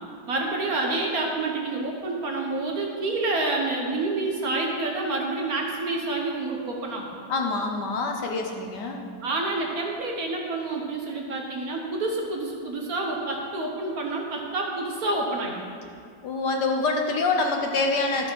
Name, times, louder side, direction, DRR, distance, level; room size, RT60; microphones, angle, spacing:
voice 1, 0.3-7.2 9.2-15.6, right 2 dB, 55° right, 0 dB, 1.3 m, -28 dB
voice 2, 7.3-9.1 16.2-18.3, left 3 dB, 65° left, 2 dB, 1.3 m, -26 dB
12.5 x 5.3 x 6.1 m, 2.3 s
omnidirectional pair, 2.2 m